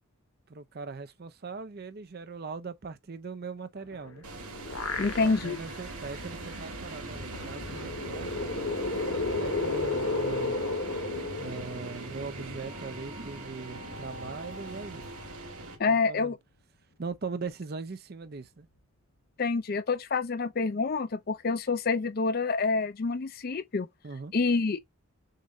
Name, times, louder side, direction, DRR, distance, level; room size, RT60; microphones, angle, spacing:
voice 1, 0.5-4.3 5.0-8.3 9.1-10.6 11.4-15.1 15.9-16.3 17.0-18.7 24.0-24.3, right 4 dB, 45° right, 0.5 m, -40 dB
sound 1, 3.7-19.5 20.7-20.9 21.2-21.9, left 1 dB, 90° left, 1.6 m, -54 dB
sound 2, 4.1-5.7 6.1-6.2 7.5-12.3, left 3 dB, 65° left, 1.3 m, -33 dB
sound 3, 4.2-15.8, right 2 dB, 85° right, 1.7 m, -40 dB
voice 2, 5.0-5.6 15.8-16.4 19.4-23.9 24.3-24.8, left 4 dB, 45° left, 0.5 m, -27 dB
6.6 x 2.6 x 3.0 m
head